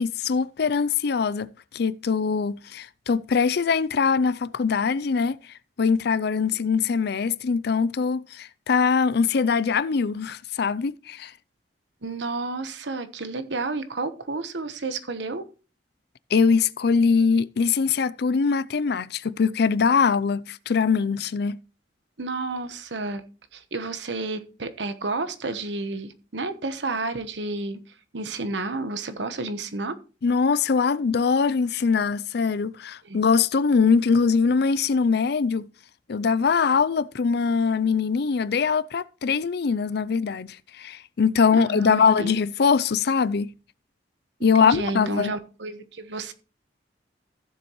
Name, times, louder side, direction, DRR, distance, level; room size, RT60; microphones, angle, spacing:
voice 1, 0.0-5.4 5.8-11.3 16.3-21.6 30.2-35.7 36.1-43.5 44.4-45.3, left 5 dB, 65° left, 0.5 m, -22 dB
voice 2, 12.0-15.5 22.2-23.2 23.5-27.8 28.1-30.0 33.0-33.2 41.5-42.3 44.5-46.3, right 3 dB, 90° right, 1.1 m, -31 dB
15.0 x 7.1 x 3.1 m
head